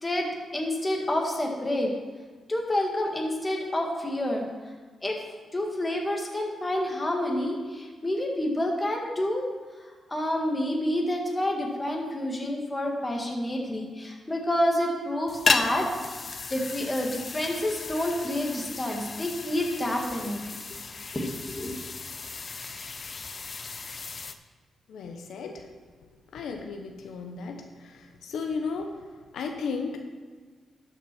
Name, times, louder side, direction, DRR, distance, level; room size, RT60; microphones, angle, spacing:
voice 1, 0.0-1.9 2.5-4.5 5.0-5.2 5.5-9.5 9.9-16.2 16.5-20.4 21.1-21.8, left 1 dB, 20° left, 1 dB, 1.9 m, -28 dB
sound 1, 15.3-24.3, left 4 dB, 40° left, 0.6 m, -33 dB
voice 2, 24.9-25.6 26.3-27.6 28.2-28.9 29.3-30.0, left 5 dB, 85° left, 4 dB, 0.9 m, -34 dB
12.5 x 6.1 x 4.5 m, 1.5 s
cardioid pair, 90°, 0 cm